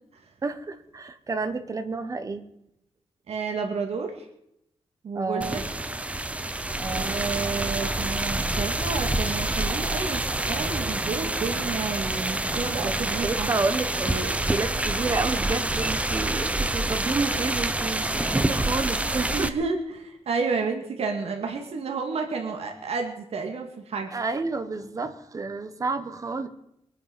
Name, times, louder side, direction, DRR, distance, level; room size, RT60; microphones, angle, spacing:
voice 1, 0.4-2.5 5.1-5.6 6.8-7.1 12.5-12.9 13.2-19.5 24.1-26.5, right 3 dB, 30° right, 9 dB, 1.3 m, -30 dB
voice 2, 3.3-4.3 5.0-5.6 6.9-13.5 19.3-24.1, right 4 dB, 70° right, 4 dB, 2.3 m, -31 dB
sound 1, 5.4-19.5, right 2 dB, 10° right, 0.8 m, -27 dB
23.5 x 9.8 x 5.3 m, 0.80 s
wide cardioid pair, 155°, 11 cm